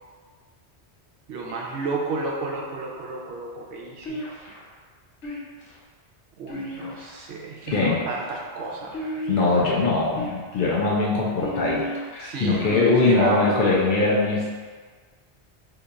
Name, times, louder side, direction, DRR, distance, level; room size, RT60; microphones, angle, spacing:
voice 1, 1.3-4.3 6.4-9.4 12.2-13.6, right 3 dB, 75° right, -1 dB, 0.9 m, -32 dB
sound 1, 4.0-4.7 5.2-5.8 6.5-7.2 7.6-8.3 8.9-9.6 10.2-10.7 11.4-12.1 12.6-13.3, left 1 dB, 85° left, 1.0 m, -34 dB
voice 2, 9.3-11.8 12.1-14.5, left 3 dB, 55° left, -4 dB, 0.6 m, -21 dB
2.8 x 2.3 x 3.8 m, 1.5 s
omnidirectional pair, 1.2 m